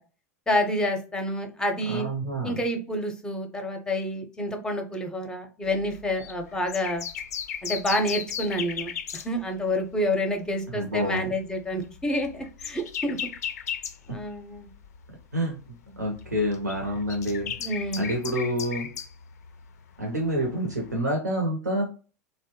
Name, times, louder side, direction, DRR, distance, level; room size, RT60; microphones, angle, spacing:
voice 1, 0.5-2.1 2.4-7.0 7.6-13.2 14.1-14.7 17.6-18.0, left 1 dB, 10° left, 5 dB, 0.6 m, -28 dB
voice 2, 1.9-2.6 10.7-11.3 14.1-14.2 15.3-15.6 16.0-17.5 18.0-18.9 20.0-21.8, equal, 85° right, 0 dB, 0.7 m, -27 dB
sound 1, 5.6-10.0 10.3-10.5 11.0-15.3 15.6-21.0, left 8 dB, 65° left, 0.4 m, -37 dB
2.6 x 2.1 x 2.9 m, 0.36 s
figure-of-eight pair, 90°, 9 cm